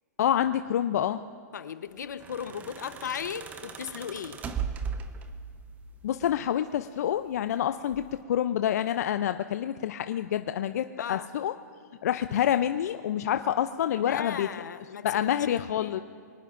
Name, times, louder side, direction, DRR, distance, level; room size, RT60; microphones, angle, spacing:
voice 1, 0.2-1.2 6.0-11.5 12.0-14.5 15.0-16.0, left 10 dB, 60° left, 10 dB, 0.5 m, -27 dB
voice 2, 1.5-4.4 11.0-11.3 14.0-15.5 15.8-16.0, left 8 dB, 80° left, 12 dB, 0.9 m, -36 dB
sound 1, 2.0-5.6 6.8-7.5 7.9-8.2, right 6 dB, 15° right, 0.8 m, -37 dB
24.5 x 18.5 x 2.6 m, 2.3 s
hypercardioid pair, 140°, 10 cm